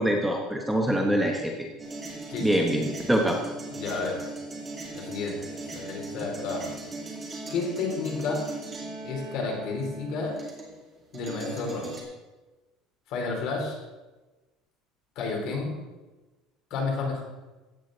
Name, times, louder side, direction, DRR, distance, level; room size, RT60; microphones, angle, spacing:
voice 1, 0.0-1.5 2.4-3.4, right 1 dB, ahead, 0 dB, 1.0 m, -24 dB
sound 1, 1.8-10.9 11.1-12.0, right 2 dB, 20° right, 2.3 m, -39 dB
voice 2, 2.3-2.7 3.7-4.2 4.9-6.7 7.5-8.4 9.0-10.3 11.1-12.0 13.1-13.8 15.2-15.8 16.7-17.2, left 4 dB, 55° left, 0 dB, 3.4 m, -31 dB
15.0 x 8.9 x 3.9 m, 1.2 s
cardioid pair, 170°, 0 cm